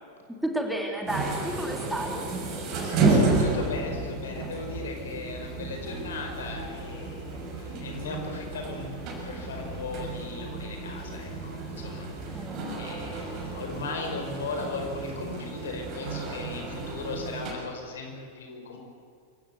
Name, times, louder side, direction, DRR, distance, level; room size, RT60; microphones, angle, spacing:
voice 1, 0.4-2.3 12.3-12.7, right 1 dB, 5° right, 1 dB, 3.0 m, -31 dB
sound 1, 1.1-17.5, right 3 dB, 40° right, 6.1 m, -31 dB
voice 2, 3.4-8.9 9.2-12.5 12.8-18.8, left 3 dB, 65° left, 3 dB, 5.0 m, -37 dB
25.5 x 16.5 x 8.3 m, 2.3 s
figure-of-eight pair, 90°, 0 cm